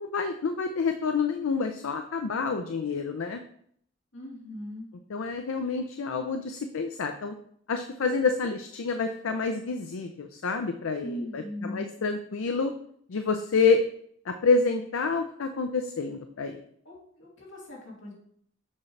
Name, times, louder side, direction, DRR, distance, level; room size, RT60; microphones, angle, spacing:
voice 1, 0.0-3.4 5.1-7.3 7.7-11.1 11.3-12.7 13.1-13.8 14.3-16.6, left 4 dB, 85° left, 7 dB, 0.5 m, -28 dB
voice 2, 4.1-4.9 5.6-5.8 11.0-11.9 16.8-18.1, left 1 dB, 70° left, -4 dB, 2.7 m, -39 dB
7.3 x 5.7 x 3.2 m, 0.66 s
head